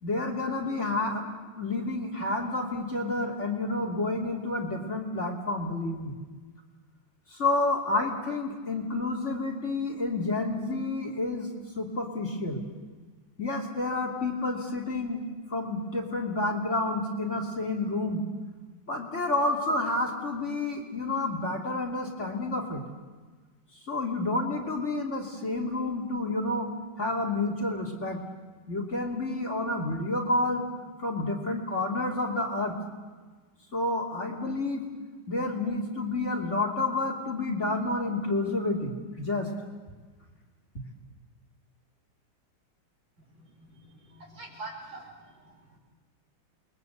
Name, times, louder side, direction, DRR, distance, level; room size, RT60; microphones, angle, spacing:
voice 1, 0.0-6.2 7.3-11.5 11.8-12.6 13.4-15.2 15.5-18.2 18.9-22.8 23.9-26.7 27.0-28.2 28.7-30.6 31.0-32.8 33.7-34.8 35.3-39.5, left 2 dB, 35° left, 0 dB, 3.1 m, -29 dB
voice 2, 43.4-45.8, right 2 dB, 65° right, 0 dB, 6.4 m, -45 dB
28.5 x 22.0 x 8.2 m, 1.4 s
omnidirectional pair, 2.3 m